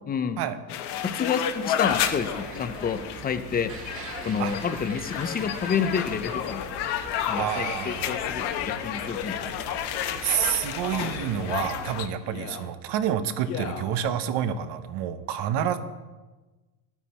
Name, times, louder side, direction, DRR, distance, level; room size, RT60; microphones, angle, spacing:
voice 1, 0.1-0.4 1.0-3.7 4.2-6.6 7.3-9.4, left 6 dB, 20° left, 11 dB, 0.6 m, -29 dB
sound 1, 0.7-12.1, left 10 dB, 55° left, 1.1 m, -31 dB
sound 2, 1.8-12.0, right 3 dB, 30° right, 1.5 m, -42 dB
Male speech man speaking, 6.3-6.7 7.8-8.3 9.4-9.9 10.8-11.3 12.2-12.7 13.4-13.9 14.6-14.7, left 6 dB, 85° left, 1.9 m, -40 dB
voice 2, 7.4-8.2 10.2-15.8, right 9 dB, 55° right, 10 dB, 1.0 m, -28 dB
12.0 x 9.1 x 4.4 m, 1.2 s
supercardioid pair, 125°, 48 cm